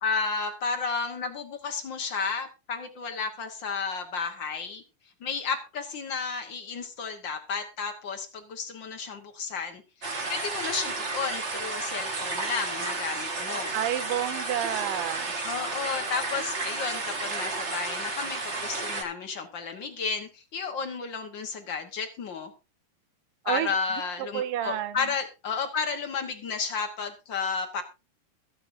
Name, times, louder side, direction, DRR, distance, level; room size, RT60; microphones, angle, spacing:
voice 1, 0.0-4.8 5.2-9.8 10.3-13.7 15.4-22.5 23.4-27.8, left 5 dB, 65° left, 5 dB, 1.1 m, -32 dB
sound 1, 10.0-19.0, right 3 dB, 60° right, 0.7 m, -32 dB
voice 2, 13.7-15.3 23.5-23.8 24.3-25.0, right 11 dB, 80° right, 11 dB, 2.4 m, -29 dB
22.5 x 7.8 x 2.7 m, 0.28 s
omnidirectional pair, 4.1 m